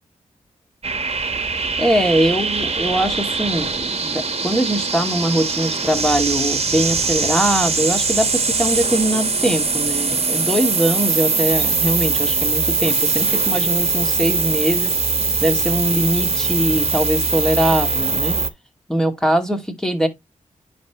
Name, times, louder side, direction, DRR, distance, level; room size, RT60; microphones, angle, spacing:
sound 1, 0.8-18.5, right 4 dB, 45° right, 1.4 m, -21 dB
voice 1, 1.8-14.9 15.4-18.4 18.9-20.1, right 1 dB, 5° left, 2.5 m, -21 dB
10.0 x 5.3 x 3.1 m
cardioid pair, 40°, 14 cm